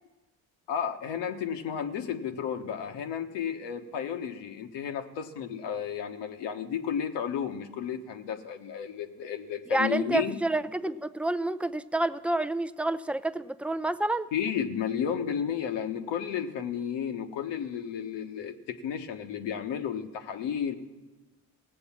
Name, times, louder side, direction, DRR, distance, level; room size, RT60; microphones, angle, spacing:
voice 1, 0.7-10.4 14.3-20.8, left 8 dB, 70° left, 6 dB, 1.3 m, -32 dB
voice 2, 9.7-14.3, right 2 dB, 5° right, 12 dB, 0.5 m, -29 dB
17.5 x 7.9 x 7.3 m, 1.2 s
hypercardioid pair, 50°, 44 cm